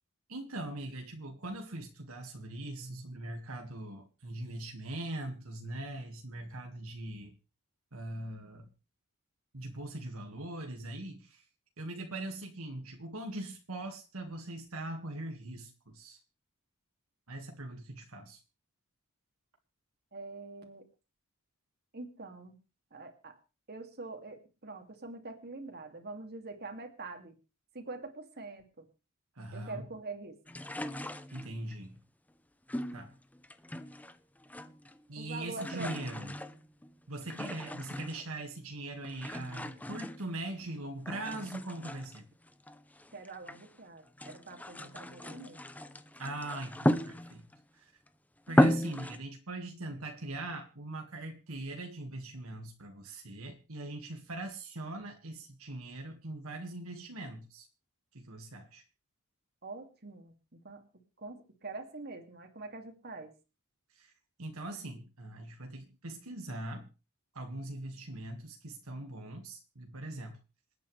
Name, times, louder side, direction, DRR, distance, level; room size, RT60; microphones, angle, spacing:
voice 1, 0.3-7.3 7.9-8.7 9.5-11.4 11.8-16.2 17.3-18.4 29.4-29.9 31.3-32.0 32.9-33.1 35.1-36.3 37.1-42.3 46.2-47.5 47.7-47.9 48.5-57.7 58.1-58.8 63.9-64.1 64.4-66.9 67.3-70.4, right 2 dB, 75° right, 3 dB, 2.0 m, -41 dB
voice 2, 20.1-20.8 21.9-22.6 22.9-23.4 23.7-27.4 27.7-28.9 29.5-30.4 35.2-35.9 43.1-45.6 59.6-60.8 61.2-63.3, right 3 dB, 45° right, 5 dB, 2.6 m, -44 dB
sound 1, 30.5-31.7 32.7-34.2 34.4-35.0 35.3-38.4 39.0-40.7 41.1-43.7 44.1-47.6 48.1-48.2 48.5-49.2, left 1 dB, 5° left, 0.7 m, -34 dB
27.5 x 9.3 x 3.4 m, 0.32 s
head